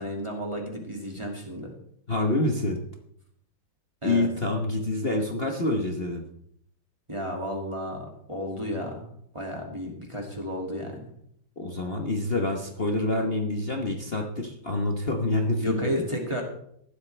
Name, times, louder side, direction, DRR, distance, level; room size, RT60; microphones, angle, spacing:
voice 1, 0.0-1.7 4.0-4.3 7.1-9.1 9.3-11.1 15.6-16.4, equal, 15° right, 0 dB, 2.2 m, -32 dB
voice 2, 2.1-2.8 4.0-6.3 11.6-15.9, left 2 dB, 35° left, 2 dB, 1.2 m, -27 dB
15.5 x 12.0 x 3.3 m, 0.70 s
omnidirectional pair, 2.2 m